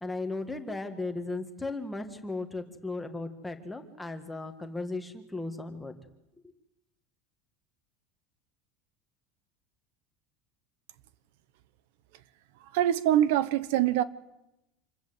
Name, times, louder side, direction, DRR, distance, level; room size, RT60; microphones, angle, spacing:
voice 1, 0.0-5.9, left 2 dB, 5° left, 5 dB, 1.8 m, -36 dB
voice 2, 12.6-14.0, right 11 dB, 70° right, 16 dB, 1.0 m, -24 dB
27.5 x 22.0 x 8.1 m, 0.92 s
cardioid pair, 180°, 0 cm